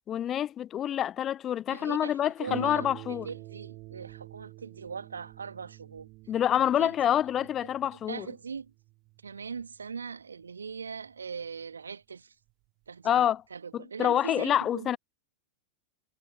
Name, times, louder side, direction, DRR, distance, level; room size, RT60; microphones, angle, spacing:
voice 1, 0.1-3.3 6.3-8.3 13.0-13.4 13.7-15.0, left 10 dB, 25° left, 0.4 m, -27 dB
voice 2, 1.7-6.1 6.6-6.9 7.4-7.5 7.9-8.7 9.2-12.3 12.9-15.0, right 5 dB, 75° right, 1.7 m, -40 dB
Harp, 2.5-11.6 12.5-12.6 13.1-13.2, right 23 dB, 40° right, 2.2 m, -48 dB
figure-of-eight pair, 95°, 0 cm